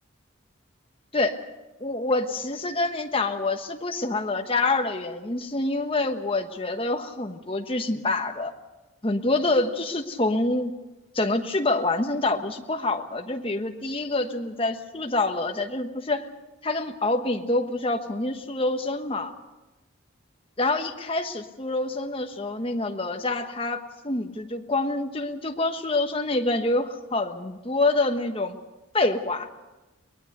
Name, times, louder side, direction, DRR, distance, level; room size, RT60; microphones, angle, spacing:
voice 1, 1.8-8.5 9.0-10.7 11.1-16.3 16.6-19.3 20.6-28.6 28.9-29.5, left 2 dB, 25° left, 5 dB, 1.2 m, -26 dB
23.0 x 19.5 x 6.7 m, 1.1 s
head